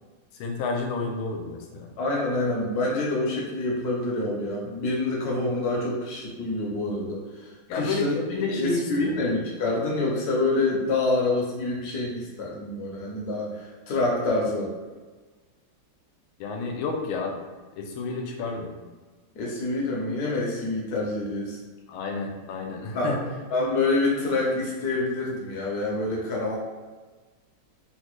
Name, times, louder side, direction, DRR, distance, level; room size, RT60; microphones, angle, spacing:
voice 1, 0.3-1.9 7.7-9.3 16.4-17.3 17.8-18.7 21.9-23.2, left 3 dB, 85° left, 2 dB, 1.4 m, -30 dB
voice 2, 2.0-8.1 8.5-14.7 19.3-21.6 22.9-23.2 23.5-26.6, left 2 dB, 65° left, -3 dB, 1.0 m, -27 dB
3.8 x 2.1 x 3.0 m, 1.3 s
omnidirectional pair, 2.2 m